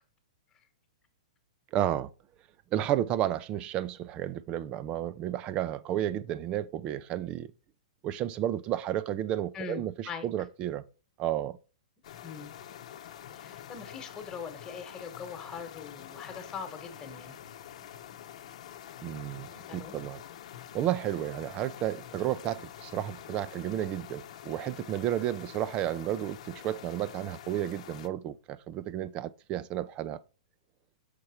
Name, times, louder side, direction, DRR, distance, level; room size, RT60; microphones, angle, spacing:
voice 1, 1.7-2.1 2.7-7.5 8.0-10.8 11.2-11.6 19.0-20.2 20.7-30.2, right 12 dB, 25° right, 0.5 m, -32 dB
voice 2, 9.5-10.2 12.2-12.6 13.3-17.4 19.7-20.0, left 6 dB, 15° left, 1.4 m, -42 dB
sound 1, 12.0-28.1, left 10 dB, 60° left, 0.9 m, -46 dB
6.6 x 4.6 x 4.3 m
hypercardioid pair, 150°, 4 cm